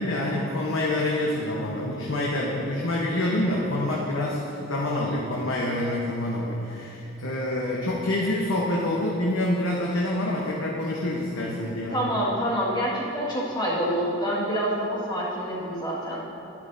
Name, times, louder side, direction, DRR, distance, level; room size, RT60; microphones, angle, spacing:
voice 1, 0.0-12.0, left 1 dB, 70° left, -4 dB, 1.0 m, -27 dB
voice 2, 11.9-16.2, equal, 20° left, -7 dB, 1.8 m, -27 dB
11.5 x 10.5 x 2.7 m, 2.8 s
head